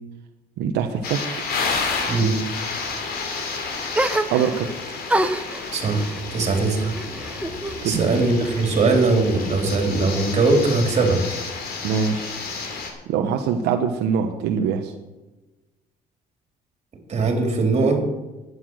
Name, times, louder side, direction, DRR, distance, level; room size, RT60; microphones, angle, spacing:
voice 1, 0.6-1.2 4.3-4.7 7.8-8.1 11.8-12.3 13.1-14.9, right 7 dB, 85° right, 4 dB, 1.1 m, -23 dB
sound 1, 1.0-12.9, left 4 dB, 65° left, 2.9 m, -31 dB
sound 2, 3.9-4.7 5.1-7.8 8.1-9.0, right 1 dB, 10° right, 0.8 m, -27 dB
voice 2, 5.7-6.0 6.3-6.9 7.8-11.2 17.1-18.0, right 3 dB, 40° right, 3 dB, 3.6 m, -20 dB
11.0 x 9.8 x 6.3 m, 1.1 s
cardioid pair, 110°, 17 cm